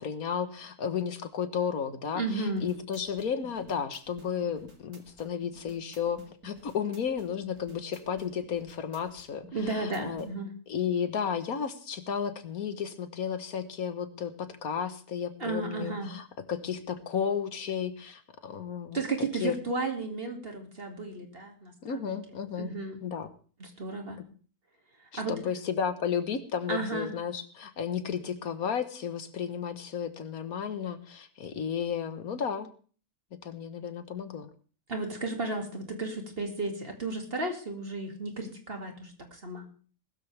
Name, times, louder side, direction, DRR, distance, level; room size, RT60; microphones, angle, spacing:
voice 1, 0.0-10.3 10.7-19.5 21.8-22.7 23.0-23.3 25.1-32.7 33.4-34.5, left 7 dB, 75° left, 11 dB, 1.6 m, -33 dB
voice 2, 2.1-2.7 9.5-10.5 15.4-16.1 18.9-22.2 22.6-23.0 23.6-24.2 25.1-25.4 26.7-27.1 34.9-39.7, right 3 dB, 40° right, 4 dB, 2.5 m, -34 dB
sound 1, 2.4-10.3, right 2 dB, 75° right, 2.7 m, -53 dB
20.0 x 13.0 x 3.4 m, 0.40 s
omnidirectional pair, 1.6 m